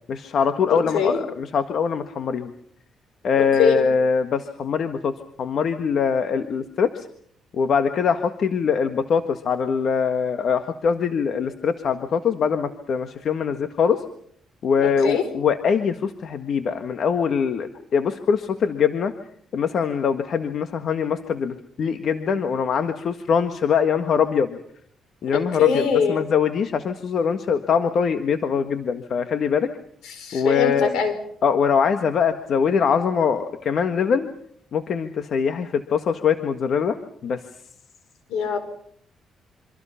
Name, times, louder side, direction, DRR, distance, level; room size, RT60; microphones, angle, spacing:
voice 1, 0.1-2.5 3.2-5.1 5.4-7.1 7.5-14.0 14.6-19.1 19.5-24.6 25.2-29.7 30.3-30.9 31.4-34.3 34.7-37.0 37.2-37.4, left 6 dB, 60° left, 8 dB, 1.6 m, -23 dB
voice 2, 0.7-1.2 3.4-3.8 14.8-15.2 25.3-26.3 30.0-31.1 38.3-38.6, left 6 dB, 85° left, 10 dB, 5.0 m, -23 dB
27.0 x 25.5 x 5.8 m, 0.65 s
cardioid pair, 90°, 0 cm